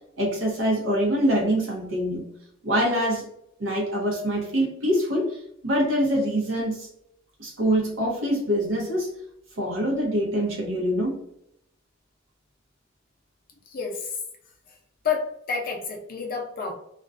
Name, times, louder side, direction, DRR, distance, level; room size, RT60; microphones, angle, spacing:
voice 1, 0.2-2.3 2.6-3.2 3.6-6.9 7.4-9.1 9.6-11.2, equal, 75° right, -2 dB, 0.7 m, -24 dB
voice 2, 13.7-14.2 15.0-16.7, left 5 dB, 45° left, 0 dB, 0.5 m, -29 dB
2.4 x 2.2 x 2.4 m, 0.74 s
head